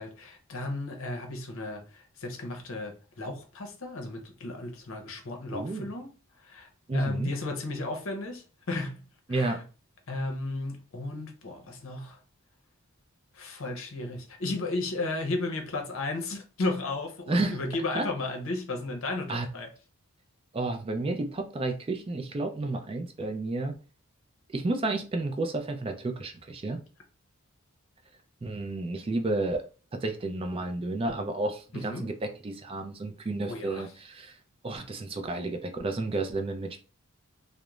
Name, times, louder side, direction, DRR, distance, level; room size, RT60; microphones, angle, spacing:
voice 1, 0.0-6.1 6.4-9.0 9.3-9.6 10.1-12.2 13.3-19.7 31.7-32.1 33.4-33.9, left 2 dB, 65° left, 0.7 m, -34 dB
voice 2, 5.5-5.9 6.9-7.3 9.3-9.6 17.3-17.6 17.9-18.1 19.3-19.5 20.5-23.7 24.5-26.8 28.4-29.6 29.9-34.3 34.6-36.8, right 2 dB, 25° right, 0.4 m, -31 dB
2.4 x 2.0 x 3.0 m
head